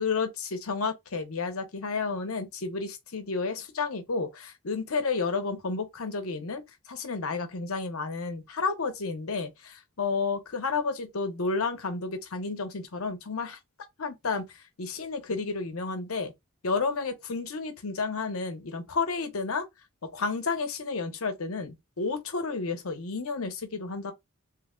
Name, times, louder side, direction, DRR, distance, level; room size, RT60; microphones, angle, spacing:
voice 1, 0.0-6.6 6.9-13.6 14.0-16.3 16.6-19.7 20.0-24.1, left 4 dB, 80° left, 0.9 m, -31 dB
3.1 x 2.1 x 3.7 m
head